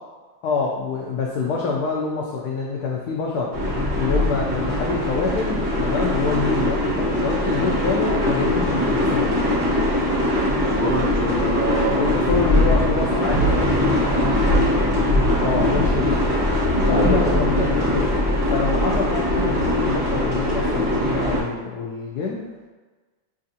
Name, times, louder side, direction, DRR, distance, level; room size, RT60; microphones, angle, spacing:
voice 1, 0.4-3.6 3.9-9.4 11.9-13.8 15.4-16.3 16.9-18.1 18.5-22.5, left 4 dB, 85° left, -2 dB, 0.8 m, -26 dB
sound 1, 3.5-21.4, left 1 dB, 30° right, 1.0 m, -21 dB
voice 2, 10.5-12.5 13.9-14.9 15.6-15.9 16.8-17.7, right 1 dB, 65° right, -9 dB, 0.4 m, -27 dB
6.3 x 2.5 x 2.6 m, 1.3 s
omnidirectional pair, 2.2 m